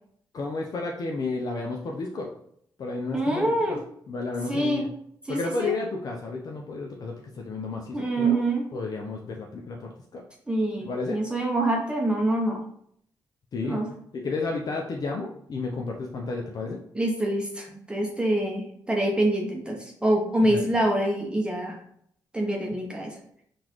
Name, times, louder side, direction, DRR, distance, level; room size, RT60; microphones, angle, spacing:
voice 1, 0.3-2.3 2.8-3.8 4.1-4.9 5.3-8.4 8.7-10.2 10.9-11.2 13.5-13.8 14.1-16.8 20.4-20.6, left 3 dB, 55° left, 0 dB, 0.5 m, -32 dB
voice 2, 3.1-3.8 4.5-4.9 5.3-5.7 7.9-8.7 10.5-12.6 13.6-13.9 16.9-21.8 22.3-23.2, right 1 dB, 10° right, 0 dB, 0.7 m, -25 dB
3.8 x 2.4 x 3.0 m, 0.68 s
cardioid pair, 70°, 8 cm